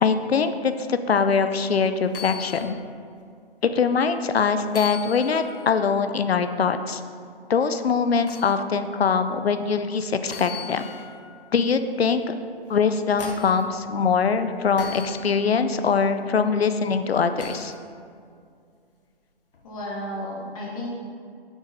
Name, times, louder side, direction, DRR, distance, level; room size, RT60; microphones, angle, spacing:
voice 1, 0.0-2.8 3.6-7.0 7.5-10.8 11.5-12.3 12.7-17.7, left 5 dB, 75° left, 10 dB, 0.6 m, -23 dB
sound 1, 2.1-2.7 3.2-3.3 4.7-5.7 8.3-8.5 10.3-11.2 12.7-13.6 14.8-15.2 17.4-17.8 19.5-19.7, left 6 dB, 60° left, 1.0 m, -38 dB
voice 2, 19.6-20.9, left 1 dB, 35° left, -5 dB, 1.5 m, -33 dB
6.3 x 6.3 x 3.8 m, 2.3 s
figure-of-eight pair, 140°, 31 cm